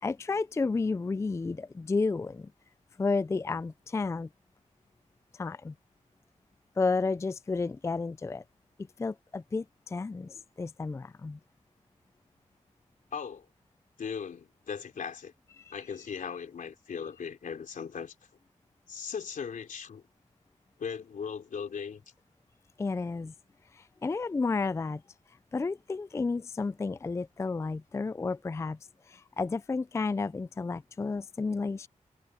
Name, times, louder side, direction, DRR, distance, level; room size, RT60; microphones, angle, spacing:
voice 1, 0.0-2.5 3.0-4.3 5.3-5.7 6.8-8.4 9.0-11.4 15.6-15.7 22.8-23.3 23.7-25.0 25.5-28.8 29.1-31.9, left 4 dB, 20° left, 0.3 m, -31 dB
voice 2, 13.1-13.5 14.0-15.3 15.7-18.1 18.9-20.0 20.8-22.0, left 6 dB, 85° left, 3.5 m, -38 dB
wide cardioid pair, 105°, 13 cm